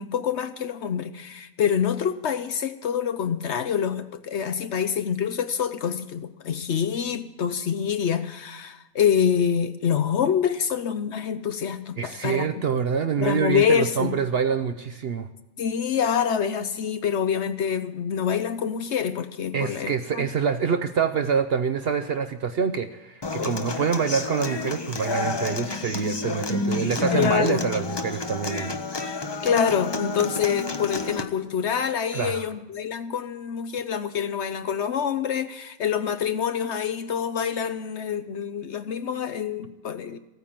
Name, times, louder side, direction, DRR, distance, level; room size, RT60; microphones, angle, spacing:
voice 1, 0.0-12.6 13.2-14.1 15.6-20.3 23.4-23.5 27.1-27.6 29.4-40.2, left 8 dB, 60° left, 11 dB, 0.8 m, -26 dB
voice 2, 12.0-15.3 19.5-28.8 29.1-29.4 32.1-32.4, right 6 dB, 60° right, 9 dB, 0.7 m, -26 dB
Human voice / Acoustic guitar, 23.2-31.2, left 3 dB, 30° left, 0.5 m, -30 dB
15.5 x 9.3 x 7.4 m, 1.0 s
omnidirectional pair, 1.5 m